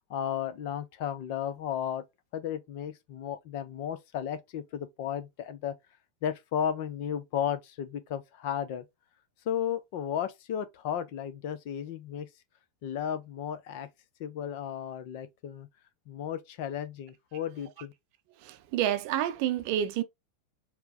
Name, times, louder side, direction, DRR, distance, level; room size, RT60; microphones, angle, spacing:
voice 1, 0.1-2.0 2.3-5.7 6.2-8.8 9.5-12.3 12.8-13.9 14.2-15.7 16.1-17.9, left 9 dB, 45° left, 0.7 m, -34 dB
voice 2, 18.4-20.0, right 11 dB, 45° right, 0.6 m, -29 dB
4.5 x 2.2 x 3.9 m
figure-of-eight pair, 90°, 0 cm